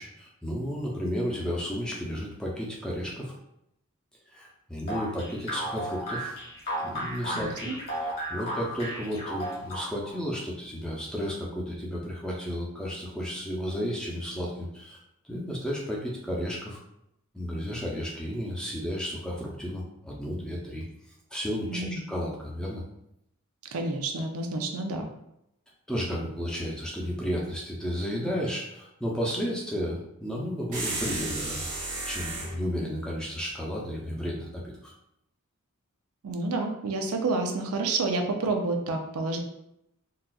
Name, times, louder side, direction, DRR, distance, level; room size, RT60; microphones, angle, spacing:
voice 1, 0.0-3.3 4.3-6.4 6.8-15.0 15.3-16.8 17.3-20.9 21.3-22.8 25.9-34.9, equal, 5° left, -4 dB, 0.5 m, -33 dB
sound 1, 4.9-10.2, equal, 45° left, 1.3 m, -34 dB
voice 2, 7.3-7.8 21.7-22.0 23.7-25.1 36.2-39.4, right 3 dB, 75° right, 3 dB, 0.5 m, -29 dB
sound 2, 30.7-32.6, right 2 dB, 35° right, 0.8 m, -33 dB
4.0 x 2.3 x 2.3 m, 0.80 s
head